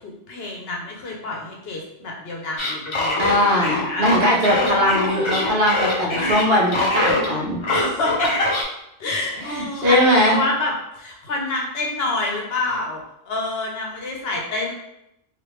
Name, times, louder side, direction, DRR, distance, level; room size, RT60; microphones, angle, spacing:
voice 1, 0.0-4.1 4.5-4.8 7.7-8.5 9.0-14.7, left 2 dB, 60° left, -1 dB, 0.8 m, -27 dB
sound 1, 2.6-7.3 7.6-8.6, left 2 dB, 35° left, 0.5 m, -23 dB
voice 2, 3.2-7.6 9.4-10.4, equal, 60° right, -3 dB, 1.0 m, -20 dB
3.1 x 2.5 x 3.0 m, 0.81 s
omnidirectional pair, 1.2 m